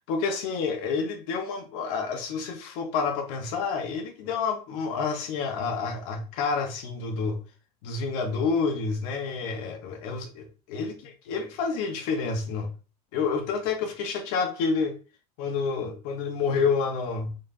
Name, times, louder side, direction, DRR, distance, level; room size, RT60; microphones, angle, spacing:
voice 1, 0.1-7.4 7.8-12.7 13.1-14.9 15.4-17.3, left 5 dB, 70° left, 5 dB, 1.1 m, -29 dB
3.9 x 3.2 x 2.7 m, 0.34 s
supercardioid pair, 100°, 19 cm